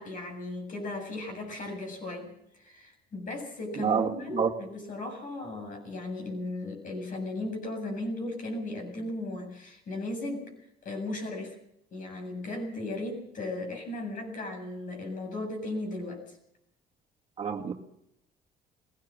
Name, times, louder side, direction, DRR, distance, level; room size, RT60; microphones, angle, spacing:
voice 1, 0.0-2.3 2.6-11.6 11.9-16.2, left 2 dB, 50° left, 4 dB, 7.5 m, -36 dB
voice 2, 3.8-4.5 17.4-17.7, right 7 dB, 35° right, 2 dB, 1.9 m, -28 dB
21.0 x 17.0 x 7.5 m, 0.78 s
cardioid pair, 110°, 17 cm